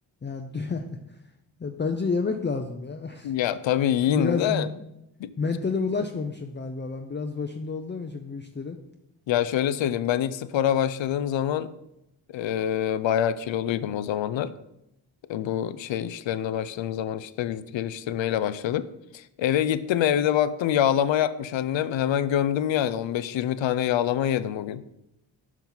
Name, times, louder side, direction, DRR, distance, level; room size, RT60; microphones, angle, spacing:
voice 1, 0.2-1.2 1.6-3.3 4.1-4.8 5.4-8.8, left 4 dB, 25° left, 5 dB, 0.6 m, -30 dB
voice 2, 3.2-4.7 5.2-5.3 9.3-11.7 12.3-14.5 15.3-18.9 19.1-24.8, left 10 dB, 75° left, 15 dB, 0.6 m, -25 dB
7.2 x 5.6 x 4.0 m, 0.85 s
supercardioid pair, 45°, 46 cm